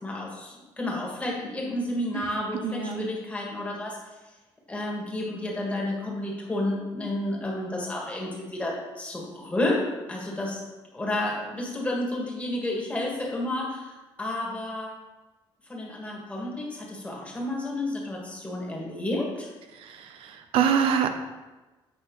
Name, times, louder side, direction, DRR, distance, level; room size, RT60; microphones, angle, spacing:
voice 1, 0.0-4.0 4.7-9.8 10.1-10.6 10.9-14.9 15.7-19.5, left 1 dB, 15° left, -2 dB, 1.8 m, -31 dB
voice 2, 2.6-3.1 19.8-21.1, right 7 dB, 85° right, 7 dB, 0.7 m, -25 dB
8.3 x 3.9 x 5.3 m, 1.2 s
cardioid pair, 130°, 9 cm